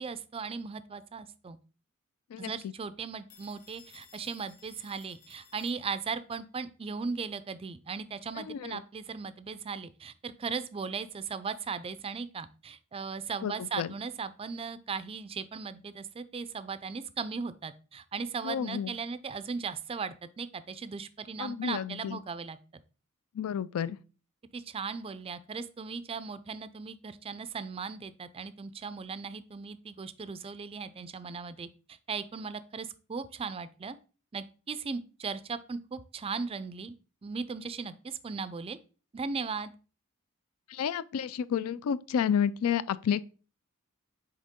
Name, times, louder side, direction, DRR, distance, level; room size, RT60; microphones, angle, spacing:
voice 1, 0.0-1.6 2.4-22.6 24.5-34.0 34.3-36.9 37.2-38.8 39.1-39.7, right 5 dB, 25° right, 0.4 m, -37 dB
voice 2, 2.3-2.7 8.4-8.8 13.4-13.9 18.4-18.9 21.4-22.2 23.3-24.0 40.7-43.2, left 8 dB, 70° left, 0.3 m, -31 dB
Telephone, 3.3-6.3, left 6 dB, 45° left, 1.2 m, -57 dB
6.4 x 4.3 x 3.6 m
head